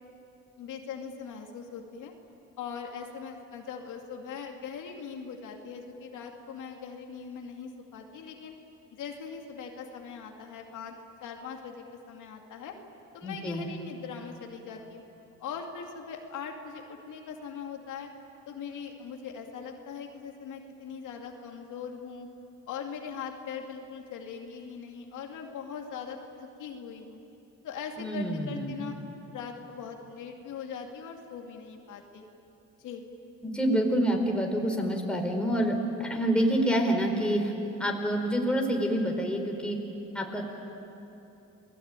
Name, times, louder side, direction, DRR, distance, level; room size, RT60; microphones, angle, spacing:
voice 1, 0.6-2.1 2.6-8.5 8.9-10.9 11.2-12.7 13.1-15.0 15.4-18.1 18.5-22.3 22.7-27.2 27.6-29.0 29.3-32.2 32.8-33.0, left 6 dB, 80° left, 2 dB, 2.6 m, -41 dB
voice 2, 13.2-13.7 28.0-28.7 33.4-37.5 37.8-39.8 40.1-40.4, equal, 5° left, 1 dB, 4.7 m, -27 dB
29.5 x 20.5 x 9.1 m, 2.9 s
cardioid pair, 90°, 30 cm